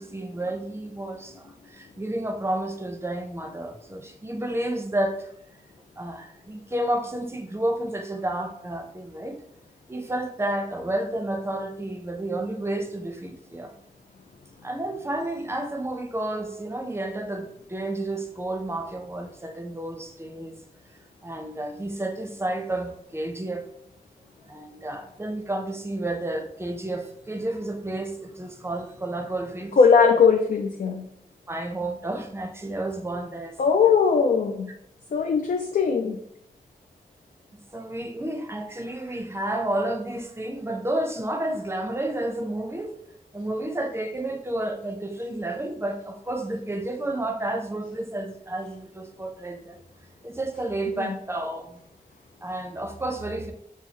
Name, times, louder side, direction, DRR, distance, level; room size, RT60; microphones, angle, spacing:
voice 1, 0.0-5.3 6.0-9.4 9.9-13.7 14.6-20.6 21.2-23.7 24.4-29.7 31.5-33.6 37.7-42.9 43.3-49.8 50.2-51.8 52.4-53.5, right 1 dB, 15° right, 5 dB, 0.6 m, -31 dB
voice 2, 29.8-31.1 33.6-34.7 35.1-36.2 51.0-51.1, left 5 dB, 60° left, 4 dB, 0.4 m, -20 dB
5.7 x 2.3 x 2.8 m, 0.72 s
wide cardioid pair, 60°, 15 cm